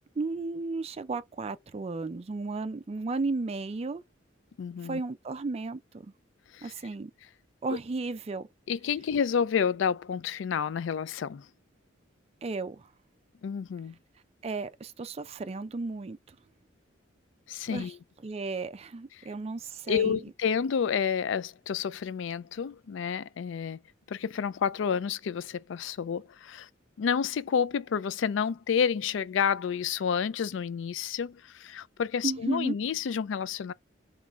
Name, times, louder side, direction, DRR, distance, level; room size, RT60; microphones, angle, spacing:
voice 1, 0.2-4.0 4.8-6.1 6.6-7.1 7.6-8.5 12.4-12.9 14.4-16.4 17.7-17.9 18.2-20.2 32.2-32.8, right 3 dB, 30° right, 0.4 m, -34 dB
voice 2, 4.6-5.0 6.5-6.7 8.7-11.5 13.4-13.9 17.5-18.0 19.2-19.3 19.9-23.8 24.1-26.7 27.0-33.7, left 7 dB, 70° left, 0.4 m, -30 dB
3.7 x 3.1 x 4.5 m
head